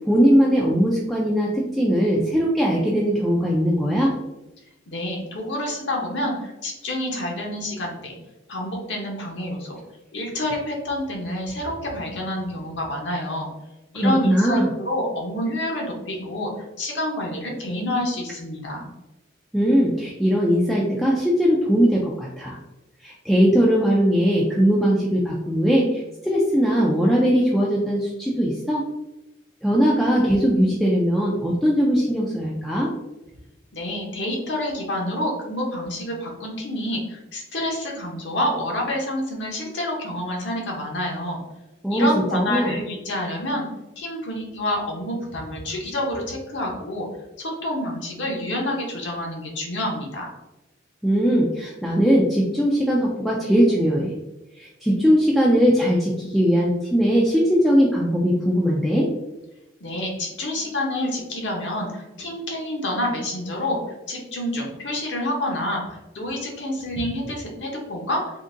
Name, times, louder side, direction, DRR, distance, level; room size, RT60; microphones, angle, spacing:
voice 1, 0.1-4.1 13.9-14.7 19.5-22.6 23.0-28.8 29.6-32.9 41.8-42.8 51.0-54.1 54.6-59.1, equal, ahead, -4 dB, 0.3 m, -20 dB
voice 2, 4.9-8.2 8.5-9.8 10.1-13.5 13.9-18.9 33.7-41.4 41.9-43.7 44.0-47.1 47.4-50.3 59.8-63.8 64.1-68.4, left 1 dB, 65° left, 0 dB, 0.8 m, -28 dB
3.7 x 2.6 x 2.5 m, 0.98 s
head